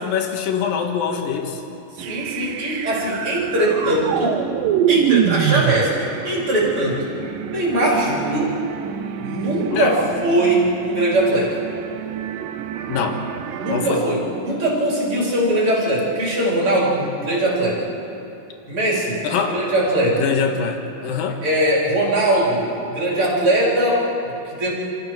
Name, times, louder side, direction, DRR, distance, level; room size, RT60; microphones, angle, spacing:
voice 1, 0.0-1.6 9.7-10.0 12.9-13.2 13.7-14.0 19.2-19.6 20.2-21.4, left 6 dB, 90° left, 3 dB, 3.3 m, -23 dB
voice 2, 1.9-4.4 4.9-7.2 7.5-8.6 9.2-11.6 13.6-17.9 18.7-19.2 19.5-20.3 21.4-24.7, right 1 dB, 40° right, -5 dB, 5.0 m, -21 dB
sound 1, 2.0-13.9, right 10 dB, 85° right, 2.4 m, -26 dB
29.0 x 15.0 x 6.1 m, 3.0 s
omnidirectional pair, 3.9 m